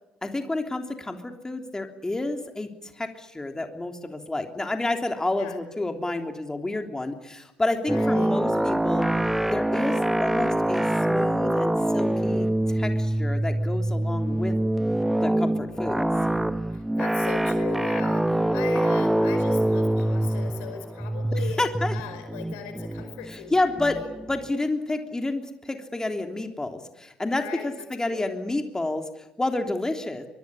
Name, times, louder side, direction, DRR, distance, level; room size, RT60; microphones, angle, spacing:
voice 1, 0.2-9.1 9.5-10.8 11.1-14.5 15.2-16.0 21.6-21.9 23.3-24.0 24.3-30.3, left 2 dB, 15° left, 5 dB, 3.4 m, -29 dB
voice 2, 7.9-8.3 16.7-21.7 21.9-24.1 27.4-28.4, left 9 dB, 75° left, 8 dB, 5.0 m, -39 dB
sound 1, 7.9-24.4, right 1 dB, 5° right, 1.4 m, -25 dB
23.5 x 23.0 x 10.0 m, 0.93 s
hypercardioid pair, 55°, 4 cm